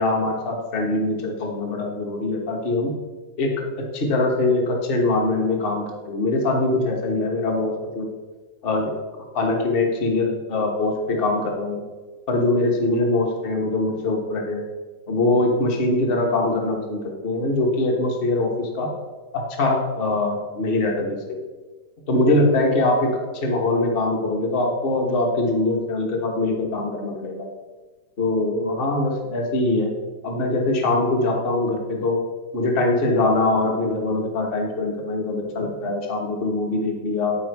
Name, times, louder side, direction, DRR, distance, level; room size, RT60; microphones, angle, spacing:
voice 1, 0.0-2.9 3.4-3.7 3.9-8.1 8.6-8.9 9.3-11.8 12.3-14.6 15.1-18.9 19.3-21.4 22.1-23.1 23.4-27.5 28.2-29.9 30.2-32.2 32.5-37.4, left 2 dB, 35° left, 1 dB, 1.2 m, -22 dB
9.6 x 4.8 x 4.6 m, 1.3 s
omnidirectional pair, 2.2 m